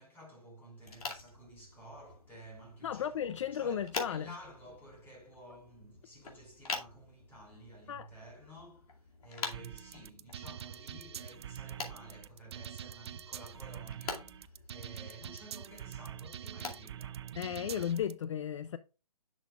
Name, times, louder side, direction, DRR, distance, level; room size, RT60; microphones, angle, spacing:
voice 1, 0.0-17.9, right 1 dB, 10° left, 2.9 m, -53 dB
sound 1, 0.8-18.1, left 4 dB, 70° left, 2.4 m, -47 dB
voice 2, 2.8-4.3 7.9-8.1 17.4-18.8, left 9 dB, 50° left, 0.4 m, -35 dB
sound 2, 9.5-18.1, right 10 dB, 45° right, 0.4 m, -45 dB
10.5 x 6.1 x 2.4 m
hypercardioid pair, 155°, 20 cm